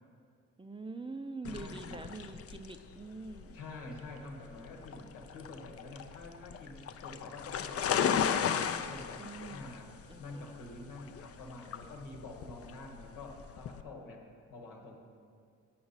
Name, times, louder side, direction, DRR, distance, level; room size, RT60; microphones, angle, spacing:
voice 1, 0.6-3.6 9.2-9.7 10.1-10.5, right 3 dB, 15° right, 7 dB, 0.4 m, -44 dB
voice 2, 1.4-2.1 3.5-8.6 8.8-15.0, left 2 dB, 85° left, 1 dB, 1.1 m, -47 dB
sound 1, 1.4-13.8, left 8 dB, 45° left, 0.4 m, -36 dB
8.5 x 5.9 x 4.0 m, 2.2 s
supercardioid pair, 55°, 33 cm